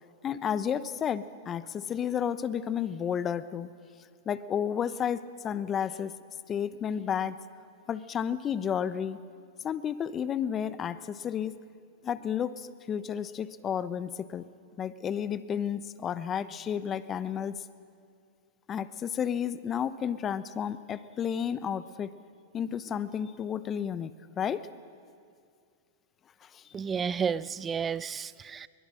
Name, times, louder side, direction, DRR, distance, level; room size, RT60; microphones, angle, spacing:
voice 1, 0.2-3.7 4.3-6.1 6.5-7.4 7.9-9.2 9.6-11.6 12.0-14.5 14.8-17.7 18.7-22.1 22.5-24.7 26.4-26.6, left 8 dB, 30° left, 14 dB, 0.9 m, -32 dB
voice 2, 26.7-28.7, right 6 dB, 20° right, 18 dB, 0.5 m, -31 dB
22.5 x 22.0 x 6.4 m, 2.3 s
hypercardioid pair, 110°, 0 cm